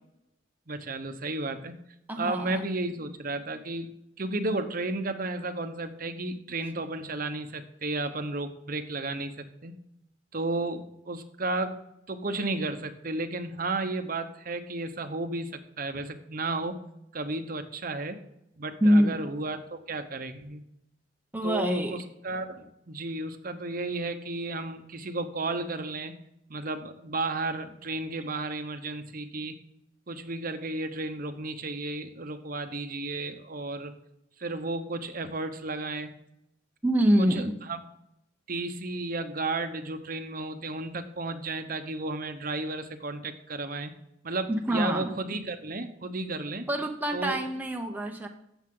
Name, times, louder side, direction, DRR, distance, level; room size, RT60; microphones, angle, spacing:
voice 1, 0.7-1.7 2.2-9.8 10.3-11.8 12.1-16.8 17.1-18.2 18.6-20.6 21.4-26.1 26.5-29.6 30.1-33.9 34.4-36.1 37.2-37.8 38.5-43.9 44.2-46.6 47.1-47.4, right 2 dB, 50° right, 8 dB, 1.0 m, -33 dB
voice 2, 2.1-2.6 18.8-19.2 21.3-22.0 36.8-37.5 44.5-45.1 46.7-48.3, equal, 10° right, 2 dB, 0.8 m, -25 dB
15.0 x 7.2 x 3.8 m, 0.82 s
head